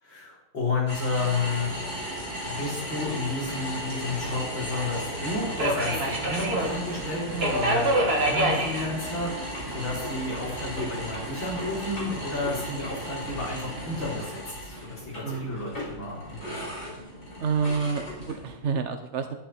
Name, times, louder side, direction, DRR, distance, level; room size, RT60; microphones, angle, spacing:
voice 1, 0.0-1.7 2.4-16.6, left 3 dB, 60° left, -5 dB, 5.2 m, -31 dB
sound 1, 0.9-18.6, equal, 35° left, 5.4 m, -37 dB
Subway metro underground, 1.4-14.3, right 1 dB, 30° right, 2.1 m, -31 dB
voice 2, 15.2-15.6 17.4-19.4, right 5 dB, 60° right, 7 dB, 0.7 m, -28 dB
14.0 x 11.5 x 4.4 m, 0.92 s
omnidirectional pair, 2.3 m